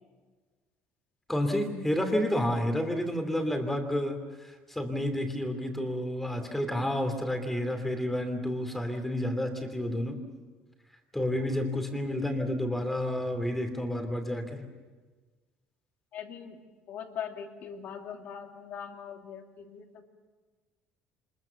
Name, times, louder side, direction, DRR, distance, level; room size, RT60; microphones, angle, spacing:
voice 1, 1.3-4.2 4.7-10.2 11.1-14.7, left 1 dB, 5° left, 6 dB, 2.8 m, -30 dB
voice 2, 16.1-16.6 16.9-20.0, left 8 dB, 55° left, 4 dB, 2.7 m, -41 dB
25.5 x 21.5 x 7.1 m, 1.4 s
cardioid pair, 135°, 4 cm